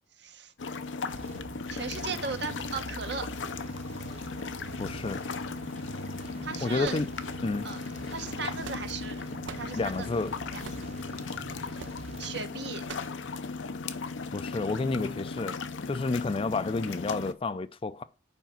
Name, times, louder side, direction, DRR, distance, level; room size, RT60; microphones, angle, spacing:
voice 1, 0.2-0.5 1.7-3.3 4.0-4.1 6.4-7.0 7.6-7.8 8.1-9.2 9.5-10.1 10.5-10.6 12.2-12.8, right 5 dB, 65° right, 1.1 m, -37 dB
sound 1, 0.6-17.3, left 4 dB, 85° left, 0.7 m, -37 dB
sound 2, 1.1-12.3, right 4 dB, 35° right, 0.4 m, -45 dB
voice 2, 4.8-5.2 6.6-7.1 7.4-7.7 9.7-10.4 14.3-15.6 15.9-18.0, left 3 dB, 30° left, 0.4 m, -30 dB
sound 3, 6.8-7.6 8.3-9.1 9.4-9.8 10.6-11.0 11.8-12.0 12.9-13.2, right 5 dB, 80° right, 0.7 m, -43 dB
7.1 x 5.1 x 5.8 m
head